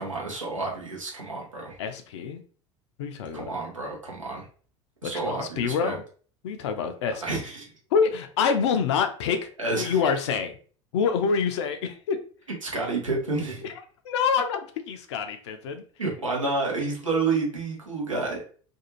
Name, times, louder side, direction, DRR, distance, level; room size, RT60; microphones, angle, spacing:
voice 1, 0.0-1.8 3.3-4.5 5.0-6.0 7.2-7.7 9.6-10.0 12.6-13.7 16.0-18.4, right 3 dB, 85° right, -2 dB, 0.9 m, -29 dB
voice 2, 1.8-2.4 3.0-3.5 5.0-6.0 6.4-7.2 7.9-9.5 9.8-10.5 10.9-12.2 14.0-14.6 14.9-15.8, left 6 dB, 60° left, 8 dB, 0.5 m, -26 dB
2.6 x 2.3 x 2.9 m, 0.42 s
figure-of-eight pair, 70°, 16 cm